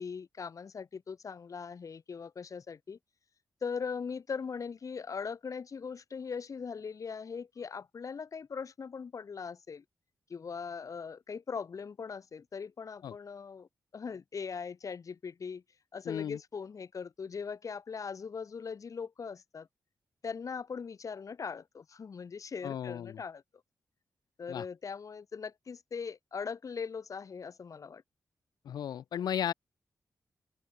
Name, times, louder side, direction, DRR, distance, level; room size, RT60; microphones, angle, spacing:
voice 1, 0.0-3.0 3.6-9.8 10.3-15.6 15.9-19.7 20.2-23.4 24.4-28.0, left 5 dB, 55° left, 3.4 m, -40 dB
voice 2, 16.0-16.4 22.6-23.2 24.5-24.7 28.7-29.5, left 9 dB, 90° left, 0.7 m, -35 dB
open air
cardioid pair, 90°, 7 cm